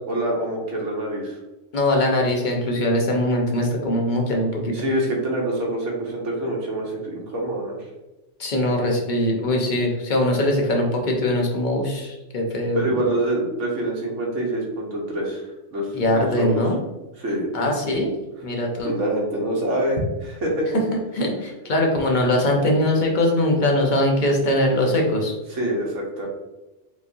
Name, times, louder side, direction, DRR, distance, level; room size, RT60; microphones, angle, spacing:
voice 1, 0.1-1.4 4.7-7.8 12.7-16.6 17.2-17.5 18.8-20.7 25.5-26.3, right 1 dB, 70° right, -2 dB, 1.5 m, -26 dB
voice 2, 1.7-4.8 8.4-13.0 15.9-16.8 17.5-18.2 18.4-18.9 20.7-20.8 21.1-25.3, left 1 dB, 45° left, 0 dB, 0.9 m, -21 dB
5.0 x 3.1 x 2.7 m, 1.0 s
omnidirectional pair, 1.3 m